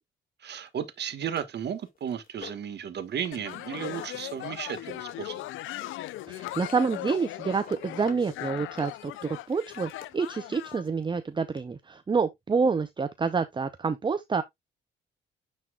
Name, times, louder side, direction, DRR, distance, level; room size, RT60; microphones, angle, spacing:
voice 1, 0.4-5.5, right 8 dB, 60° right, 1.3 m, -34 dB
sound 1, 0.7-0.8 1.2-2.8 3.1-3.6 3.8-5.9 6.4-7.1 7.4-8.2 8.6-10.1 11.0-11.1 11.6-11.7, left 6 dB, 45° left, 2.1 m, -49 dB
sound 2, 3.3-10.8, left 15 dB, 85° left, 0.5 m, -39 dB
voice 2, 6.3-14.4, right 5 dB, 25° right, 0.6 m, -28 dB
9.7 x 4.2 x 2.4 m
cardioid pair, 90°, 20 cm